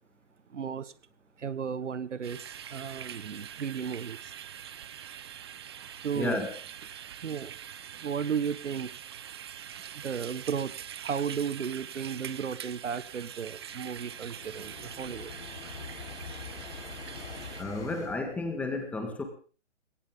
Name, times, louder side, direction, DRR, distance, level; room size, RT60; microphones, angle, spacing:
voice 1, 0.5-0.9 1.4-2.4 2.7-4.3 6.0-6.4 7.2-7.6 7.9-8.9 9.9-15.3, right 7 dB, 80° right, 16 dB, 1.5 m, -34 dB
sound 1, 2.2-17.6, right 9 dB, 20° right, 0.7 m, -44 dB
voice 2, 6.1-6.5 17.6-19.2, left 2 dB, 5° left, 5 dB, 1.7 m, -32 dB
sound 2, 13.5-18.2, left 5 dB, 70° left, 5.8 m, -44 dB
20.0 x 17.5 x 3.8 m, 0.38 s
hypercardioid pair, 160°, 36 cm